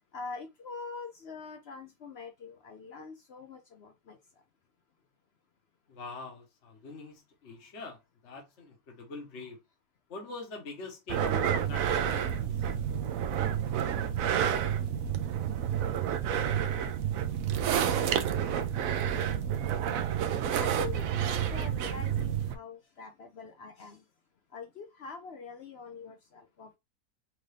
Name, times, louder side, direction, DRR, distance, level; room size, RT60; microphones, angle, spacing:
voice 1, 0.1-4.2 20.6-24.0 24.5-26.8, left 4 dB, 65° left, 0.6 m, -44 dB
voice 2, 5.9-9.6 10.1-12.4, left 3 dB, 45° left, 1.3 m, -44 dB
sound 1, 11.1-22.5, right 9 dB, 70° right, 0.9 m, -29 dB
4.7 x 2.6 x 3.2 m
omnidirectional pair, 1.8 m